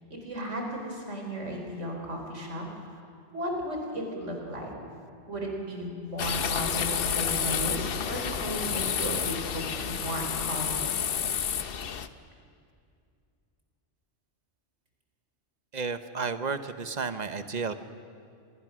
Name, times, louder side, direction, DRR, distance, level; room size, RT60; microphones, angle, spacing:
voice 1, 0.1-3.0 3.3-4.7 5.3-11.0, equal, 80° right, 1 dB, 4.2 m, -35 dB
sound 1, 6.2-12.1, left 7 dB, 55° left, 0.9 m, -30 dB
voice 2, 15.7-17.7, right 5 dB, 40° right, 10 dB, 1.0 m, -32 dB
27.0 x 20.0 x 6.2 m, 2.3 s
omnidirectional pair, 1.2 m